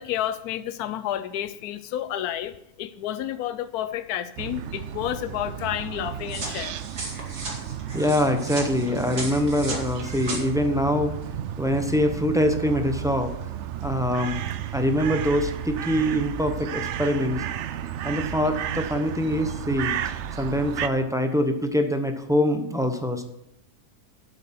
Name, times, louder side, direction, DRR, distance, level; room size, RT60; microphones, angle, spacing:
voice 1, 0.0-6.7, left 11 dB, 80° left, 11 dB, 1.1 m, -30 dB
sound 1, 4.4-20.9, right 10 dB, 65° right, 0.7 m, -33 dB
sound 2, 6.3-10.4, right 2 dB, 85° right, 2.7 m, -35 dB
voice 2, 7.9-11.1 11.6-13.4 13.8-14.4 14.7-17.4 18.0-23.2, equal, 5° right, 5 dB, 0.6 m, -24 dB
8.8 x 8.0 x 5.8 m, 0.77 s
omnidirectional pair, 1.6 m